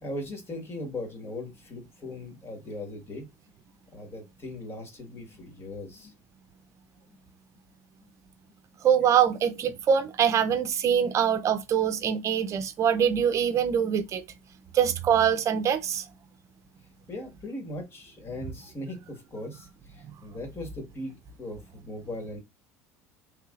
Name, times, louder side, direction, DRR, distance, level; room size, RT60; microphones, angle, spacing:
voice 1, 0.0-3.3 3.9-6.1 8.0-8.1 17.1-22.4, left 1 dB, 35° left, 1.5 m, -39 dB
voice 2, 8.8-14.2 14.7-16.0, right 8 dB, 40° right, 0.6 m, -24 dB
3.3 x 3.0 x 2.4 m
hypercardioid pair, 85°, 8 cm